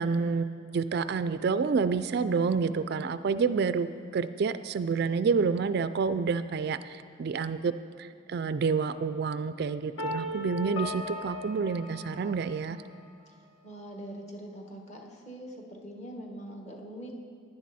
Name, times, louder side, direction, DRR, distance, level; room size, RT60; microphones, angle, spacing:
voice 1, 0.0-7.7 8.0-12.8, right 5 dB, 50° right, 13 dB, 0.3 m, -28 dB
sound 1, 10.0-12.9, left 2 dB, 70° left, 1.7 m, -37 dB
voice 2, 13.6-17.1, right 1 dB, 35° left, 1 dB, 1.4 m, -43 dB
15.5 x 10.5 x 4.2 m, 2.3 s
head